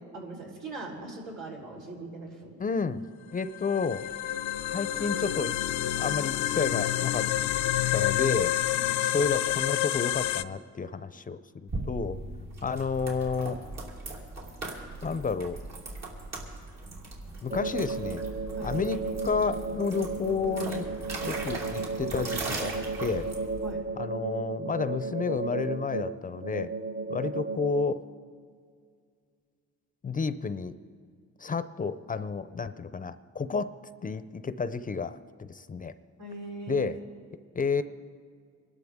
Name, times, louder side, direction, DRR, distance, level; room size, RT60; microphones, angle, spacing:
voice 1, 0.1-2.6 8.8-8.9 18.6-18.7 23.6-23.8 36.2-36.9, right 3 dB, 80° right, -3 dB, 4.1 m, -40 dB
voice 2, 2.6-3.0 3.3-4.0 4.7-5.5 6.0-7.3 7.9-8.5 9.0-12.2 12.6-13.6 15.0-15.6 17.4-18.2 18.6-20.9 21.2-22.7 23.0-23.3 24.0-26.7 27.1-28.0 30.0-30.7 31.4-33.7 34.0-35.9 36.7-37.0 37.5-37.8, left 5 dB, 30° left, 13 dB, 0.6 m, -31 dB
sound 1, 3.4-10.4, left 13 dB, 85° left, 0.5 m, -28 dB
sound 2, 11.7-23.7, right 2 dB, 60° right, 3.2 m, -39 dB
sound 3, 17.5-27.9, right 3 dB, 20° right, 0.6 m, -34 dB
24.0 x 12.0 x 3.6 m, 2.1 s
cardioid pair, 90°, 30 cm